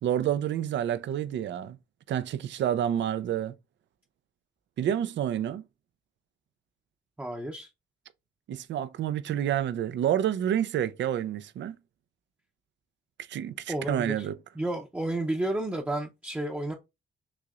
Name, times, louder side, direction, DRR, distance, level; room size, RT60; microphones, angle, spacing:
voice 1, 0.0-1.8 2.1-3.5 4.8-5.7 8.5-11.8 13.3-14.4, right 10 dB, 75° right, 0.5 m, -29 dB
voice 2, 7.2-7.7 13.7-14.3 14.6-16.7, right 1 dB, 10° right, 0.6 m, -31 dB
6.3 x 2.8 x 2.4 m
cardioid pair, 100°, 19 cm